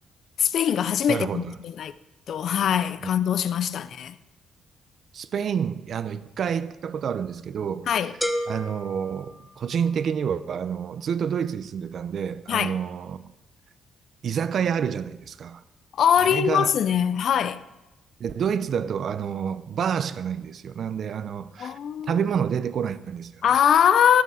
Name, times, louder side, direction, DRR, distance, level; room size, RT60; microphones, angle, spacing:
voice 1, 0.4-1.9 2.3-4.2 7.9-8.1 12.5-12.8 15.9-17.6 21.6-22.2 23.4-24.2, left 8 dB, 65° left, 0.6 m, -22 dB
voice 2, 1.1-1.6 5.1-7.9 8.5-13.3 14.2-15.6 16.2-16.7 18.2-21.8 22.0-23.4, right 7 dB, 60° right, 0.7 m, -28 dB
sound 1, 8.2-10.1, left 1 dB, 10° left, 1.3 m, -32 dB
13.0 x 12.0 x 4.9 m
cardioid pair, 90°, 0 cm